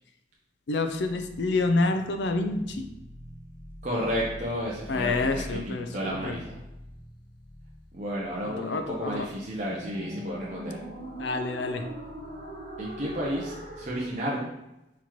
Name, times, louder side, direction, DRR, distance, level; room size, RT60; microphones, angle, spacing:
voice 1, 0.7-2.9 4.9-6.4 8.4-9.3 11.2-11.8, left 3 dB, 75° left, 7 dB, 0.5 m, -28 dB
sound 1, 1.0-14.1, equal, 55° right, 1.5 m, -43 dB
voice 2, 3.8-6.6 7.9-10.8 12.8-14.5, equal, 40° right, -5 dB, 0.6 m, -32 dB
4.4 x 4.0 x 3.0 m, 0.92 s
head